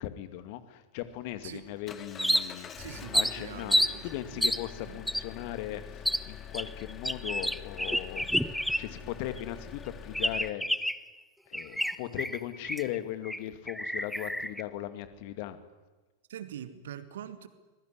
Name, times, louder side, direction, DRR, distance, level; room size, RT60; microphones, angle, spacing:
voice 1, 0.0-2.7 3.1-8.4 8.8-10.7 11.5-15.6, left 13 dB, 45° left, 10 dB, 2.3 m, -38 dB
Engine, 1.0-10.5, left 7 dB, 25° left, 2.1 m, -45 dB
sound 1, 2.2-2.7 3.1-3.9 4.4-4.6 5.1-5.2 6.1-6.2 6.5-9.1 9.4-9.5 10.1-11.1 11.5-13.0 13.3-13.4 13.7-14.6, equal, ahead, 0.8 m, -29 dB
voice 2, 2.8-4.4 4.8-5.0 16.3-17.5, right 10 dB, 60° right, 10 dB, 2.2 m, -43 dB
24.5 x 21.5 x 10.0 m, 1.2 s
figure-of-eight pair, 90°, 0 cm